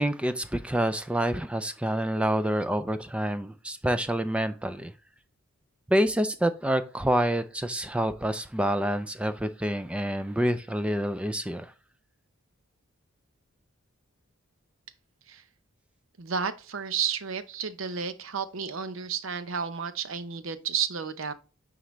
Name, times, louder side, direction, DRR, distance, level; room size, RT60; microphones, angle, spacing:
voice 1, 0.0-4.9 5.9-11.7, right 1 dB, 5° right, 0.4 m, -27 dB
voice 2, 16.2-21.3, right 6 dB, 65° right, 0.7 m, -32 dB
9.2 x 3.8 x 3.1 m
head